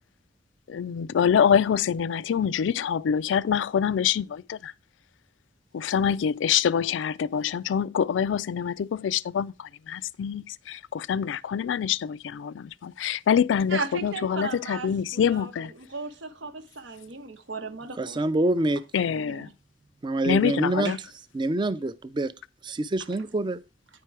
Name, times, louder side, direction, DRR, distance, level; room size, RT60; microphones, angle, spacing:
voice 1, 0.7-4.7 5.7-15.7 18.9-19.5 20.2-21.0, left 8 dB, 85° left, 0.3 m, -25 dB
voice 2, 13.7-18.2 19.2-19.5 20.8-21.0, right 4 dB, 85° right, 1.1 m, -36 dB
voice 3, 18.0-18.8 20.0-20.9 21.3-22.3 22.6-23.6, right 2 dB, 25° right, 0.4 m, -26 dB
9.8 x 4.5 x 4.6 m
head